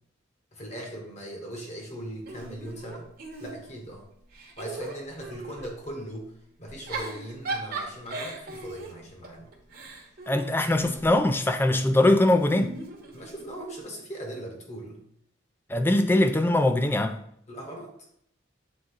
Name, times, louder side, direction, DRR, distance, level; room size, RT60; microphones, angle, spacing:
voice 1, 0.5-3.1 3.4-4.1 4.6-6.3 6.6-9.5 13.1-15.0 17.5-17.9, right 1 dB, 35° left, 1.2 m, -39 dB
Giggle / Chuckle chortle, 2.3-3.9 4.3-5.7 6.7-11.1 12.2-13.6, right 2 dB, 45° right, 1.1 m, -38 dB
voice 2, 10.3-12.7 15.7-17.2, left 1 dB, 10° left, 0.3 m, -22 dB
7.5 x 3.6 x 3.8 m
head